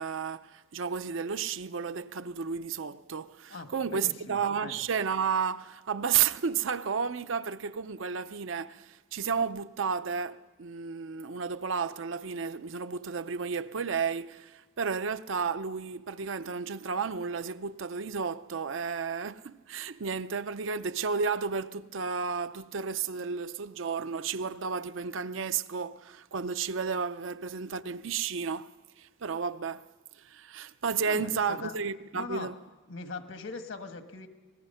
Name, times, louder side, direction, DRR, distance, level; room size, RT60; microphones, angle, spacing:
voice 1, 0.0-29.9 30.1-32.6, right 6 dB, 80° right, 0.6 m, -32 dB
voice 2, 3.5-4.8 31.1-31.8 32.1-32.5 32.9-34.3, left 3 dB, 75° left, 1.5 m, -41 dB
25.0 x 19.0 x 5.6 m
head